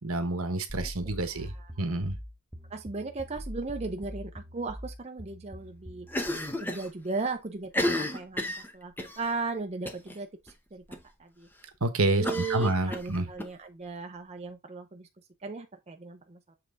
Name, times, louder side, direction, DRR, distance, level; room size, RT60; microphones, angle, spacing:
voice 1, 0.0-1.5 1.8-2.2 11.8-13.3, right 2 dB, 70° right, 1.2 m, -28 dB
sound 1, 0.7-6.2, equal, 10° right, 1.3 m, -42 dB
voice 2, 0.8-1.9 2.7-6.1 6.6-8.4 8.7-10.3 10.7-11.5 12.2-15.1 15.4-16.6, right 3 dB, 30° right, 0.6 m, -36 dB
Cough, 6.1-6.9 7.2-7.3 7.6-9.2 9.9-10.2 10.5-10.6 10.9-11.0 12.2-13.5, left 1 dB, 10° left, 0.8 m, -32 dB
7.7 x 3.4 x 3.8 m
head